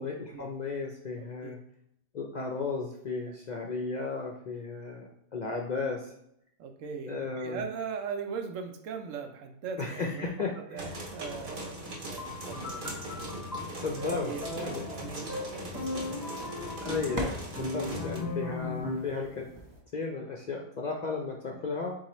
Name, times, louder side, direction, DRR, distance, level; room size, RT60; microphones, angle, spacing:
voice 1, 0.0-1.6 2.1-6.1 7.1-7.6 9.8-10.9 13.8-14.9 16.8-19.4 19.9-22.0, left 4 dB, 60° left, 0 dB, 0.4 m, -34 dB
voice 2, 1.2-1.5 3.2-3.3 6.6-10.3 10.6-13.2 14.0-16.1 16.9-17.2 21.4-21.7, right 6 dB, 70° right, 5 dB, 1.0 m, -40 dB
sound 1, 10.8-18.2, right 1 dB, 40° right, 0.9 m, -40 dB
sound 2, 12.2-19.2, left 3 dB, ahead, 0.9 m, -37 dB
sound 3, 14.3-19.8, right 1 dB, 25° right, 0.5 m, -45 dB
4.5 x 3.9 x 3.1 m, 0.72 s
omnidirectional pair, 1.4 m